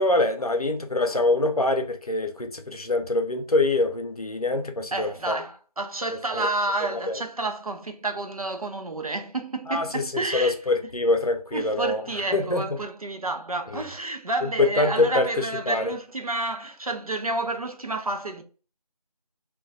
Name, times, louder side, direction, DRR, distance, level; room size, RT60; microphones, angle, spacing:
voice 1, 0.0-5.3 6.3-6.5 7.1-7.2 9.7-12.0 12.3-12.6 14.6-15.9, left 2 dB, 65° left, 0.6 m, -24 dB
voice 2, 4.9-10.6 11.5-18.4, right 2 dB, 60° right, 0.5 m, -30 dB
2.3 x 2.2 x 3.8 m
figure-of-eight pair, 175°, 20 cm